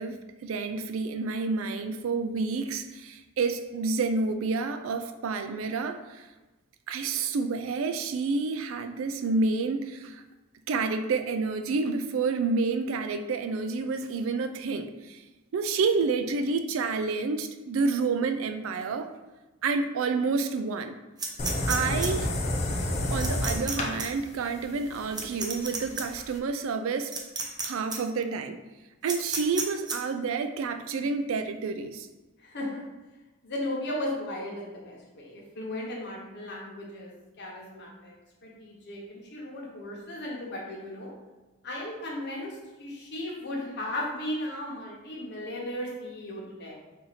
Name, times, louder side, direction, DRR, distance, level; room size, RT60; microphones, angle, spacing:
voice 1, 0.0-6.3 6.9-10.2 10.7-15.2 15.5-19.1 19.6-21.0 21.7-22.3 23.1-27.1 27.6-28.6 29.0-32.1, right 4 dB, 70° right, 8 dB, 0.4 m, -29 dB
sound 1, 21.2-22.1 23.2-23.7 24.0-24.1 25.1-26.0 27.1-27.6 27.9-28.0 29.1-30.0, right 4 dB, 20° right, 0.6 m, -31 dB
sound 2, 21.4-26.4, left 1 dB, 30° left, 0.5 m, -31 dB
voice 2, 32.4-32.8 33.4-38.1 38.4-41.1 41.6-46.8, left 1 dB, 55° left, -2 dB, 1.1 m, -36 dB
4.2 x 2.7 x 4.1 m, 1.1 s
head